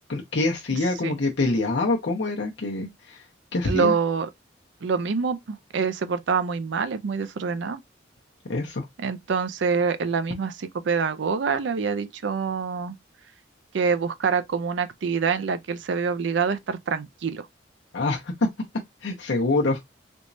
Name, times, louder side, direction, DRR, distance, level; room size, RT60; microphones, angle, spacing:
voice 1, 0.1-3.2 3.5-3.9 8.5-8.9 17.9-18.3 19.0-19.8, left 2 dB, 70° left, 0.7 m, -25 dB
voice 2, 3.6-4.3 4.8-7.8 9.0-12.9 13.7-17.5, right 5 dB, 75° right, 0.4 m, -26 dB
3.5 x 3.0 x 2.6 m
head